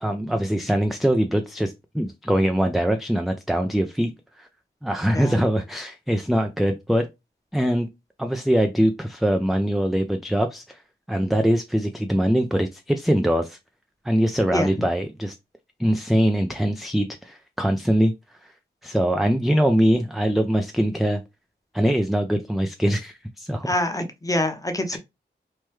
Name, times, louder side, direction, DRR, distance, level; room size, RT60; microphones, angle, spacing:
voice 1, 0.0-4.1 4.4-4.5 4.8-7.1 7.5-7.9 8.2-10.8 11.1-13.6 14.0-15.3 15.8-18.1 18.4-18.5 18.8-21.2 21.7-23.8 24.9-25.0, equal, ahead, 0.3 m, -22 dB
voice 2, 23.7-25.0, left 1 dB, 20° left, 0.7 m, -25 dB
3.1 x 2.2 x 3.0 m
cardioid pair, 60°, 19 cm